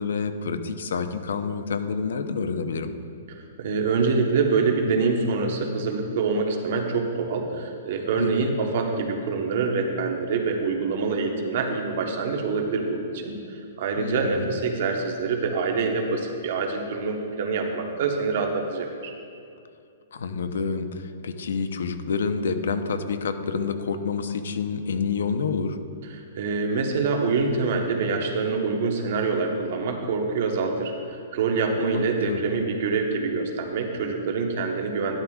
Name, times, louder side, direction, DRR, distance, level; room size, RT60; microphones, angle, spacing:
voice 1, 0.0-2.9 8.2-8.6 14.0-14.5 20.1-25.8 31.9-32.4, left 5 dB, 85° left, 8 dB, 0.8 m, -28 dB
voice 2, 3.3-13.3 13.8-19.1 26.3-35.2, right 4 dB, 50° right, 2 dB, 1.1 m, -25 dB
12.5 x 11.5 x 2.4 m, 2.5 s
hypercardioid pair, 170°, 0 cm